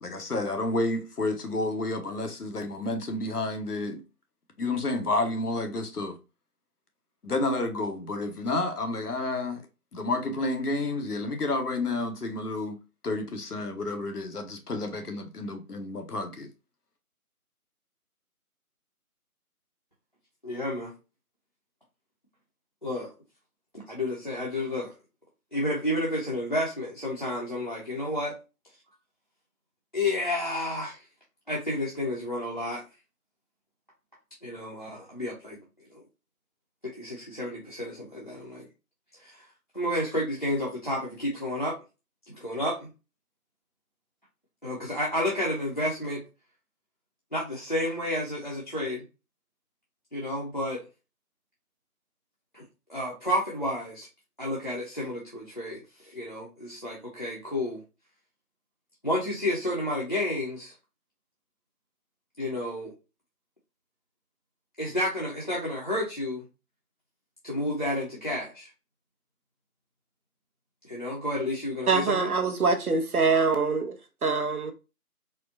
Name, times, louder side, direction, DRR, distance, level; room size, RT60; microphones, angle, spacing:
voice 1, 0.0-4.0 4.6-6.2 7.2-9.6 9.9-16.5, left 2 dB, 85° left, 1.0 m, -30 dB
voice 2, 20.4-20.9 22.8-23.1 23.9-24.9 25.5-28.4 29.9-31.0 31.5-32.8 34.4-35.6 36.8-38.7 39.2-39.4 39.7-41.8 42.3-42.9 44.6-46.2 47.3-49.0 50.1-50.9 52.5-52.6 52.9-54.1 54.4-57.8 59.0-60.7 62.4-62.9 64.8-66.5 67.4-68.7 70.8-72.3, left 1 dB, 35° left, 0.6 m, -31 dB
voice 3, 71.9-74.7, right 4 dB, 75° right, 0.8 m, -24 dB
4.3 x 2.2 x 2.5 m
figure-of-eight pair, 165°, 45 cm